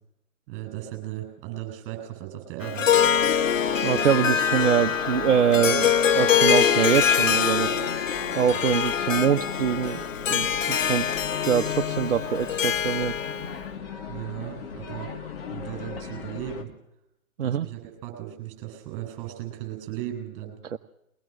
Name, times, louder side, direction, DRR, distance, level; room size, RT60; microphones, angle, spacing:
voice 1, 0.5-2.9 14.1-15.1 15.5-16.7 17.4-20.6, right 12 dB, 25° right, 4 dB, 7.9 m, -36 dB
Harp, 2.6-13.5, left 8 dB, 60° left, 1.1 m, -24 dB
sound 1, 2.9-16.6, left 6 dB, 40° left, 2.7 m, -37 dB
voice 2, 3.8-7.8 8.3-10.0 10.3-11.1 11.4-13.1 17.4-17.7 20.6-20.8, right 8 dB, 55° right, 7 dB, 1.0 m, -24 dB
22.5 x 19.5 x 6.5 m, 0.84 s
figure-of-eight pair, 135°, 43 cm